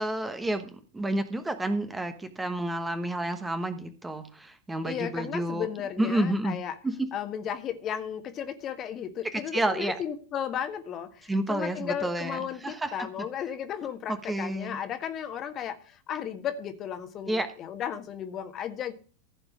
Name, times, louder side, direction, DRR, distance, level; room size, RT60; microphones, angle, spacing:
voice 1, 0.0-5.7 6.0-6.6 6.8-7.1 9.3-10.0 11.3-12.9 14.1-14.8 17.3-17.5, right 1 dB, 10° right, 9 dB, 1.1 m, -30 dB
voice 2, 4.8-6.8 7.1-18.9, left 9 dB, 30° left, 9 dB, 1.5 m, -34 dB
15.0 x 5.3 x 6.2 m, 0.39 s
figure-of-eight pair, 90°, 0 cm